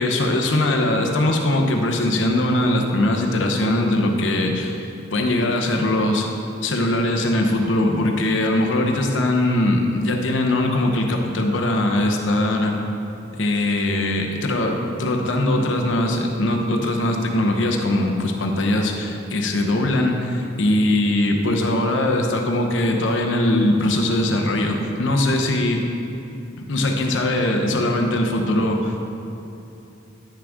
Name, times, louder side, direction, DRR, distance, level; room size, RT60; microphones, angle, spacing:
voice 1, 0.0-6.3 6.6-12.8 13.4-25.8 26.6-29.0, left 1 dB, 70° left, 2 dB, 0.9 m, -21 dB
9.8 x 6.1 x 3.6 m, 2.9 s
head